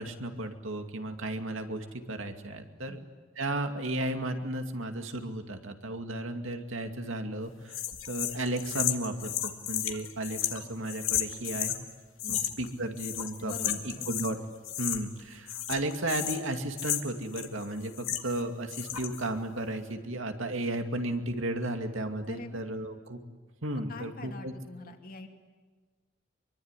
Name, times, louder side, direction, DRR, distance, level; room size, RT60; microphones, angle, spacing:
voice 1, 0.0-3.0 3.4-7.8 8.1-11.7 12.3-14.4 14.8-23.2 23.6-24.5, right 1 dB, 70° right, 5 dB, 2.5 m, -34 dB
sound 1, 7.7-11.8 12.2-12.7 13.0-14.4 14.6-15.2 15.5-18.4 18.7-19.2, left 11 dB, 75° left, 2.2 m, -33 dB
voice 2, 13.4-14.1 22.3-22.6 23.9-25.3, left 2 dB, 45° left, 4 dB, 2.7 m, -45 dB
24.5 x 23.5 x 10.0 m, 1.4 s
head